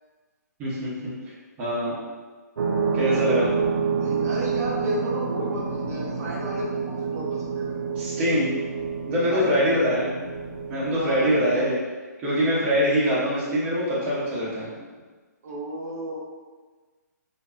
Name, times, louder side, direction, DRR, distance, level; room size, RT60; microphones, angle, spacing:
voice 1, 0.6-1.1 1.6-2.0 2.9-3.5 8.0-8.5 9.1-10.1 10.7-11.8 12.2-14.7, equal, 15° right, -10 dB, 0.7 m, -23 dB
sound 1, 2.6-11.7, right 5 dB, 90° right, 0.4 m, -28 dB
voice 2, 4.0-8.0 9.3-9.9 10.9-11.6 15.4-16.2, equal, 55° right, -5 dB, 0.7 m, -33 dB
2.6 x 2.2 x 2.3 m, 1.4 s
hypercardioid pair, 155°, 10 cm